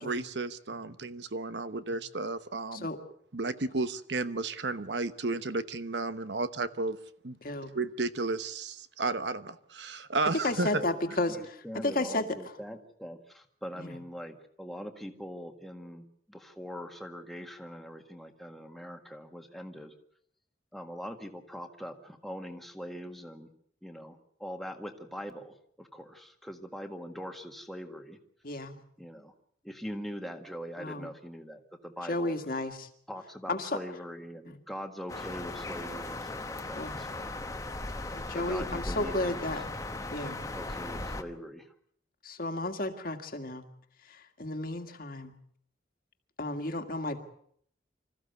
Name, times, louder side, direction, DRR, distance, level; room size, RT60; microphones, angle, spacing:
voice 1, 0.0-2.9 3.3-7.0 7.2-7.4 7.7-10.8, right 3 dB, 70° right, 12 dB, 1.0 m, -33 dB
voice 2, 7.4-7.8 10.4-12.3 13.8-13.9 28.4-28.8 30.8-31.1 32.1-32.9 33.5-33.7 34.5-34.6 36.8-37.0 38.1-39.6 40.1-40.5 42.2-43.6 44.4-45.3 46.4-47.2, left 2 dB, 50° left, 6 dB, 1.9 m, -33 dB
voice 3, 10.6-11.0 11.3-19.9 20.7-23.5 23.8-28.2 29.0-29.3 29.6-32.4 33.1-37.3 38.3-39.5 40.5-41.7, equal, ahead, 4 dB, 1.7 m, -42 dB
sound 1, 35.1-41.2, left 2 dB, 20° left, 1.1 m, -37 dB
25.5 x 14.5 x 8.1 m, 0.68 s
head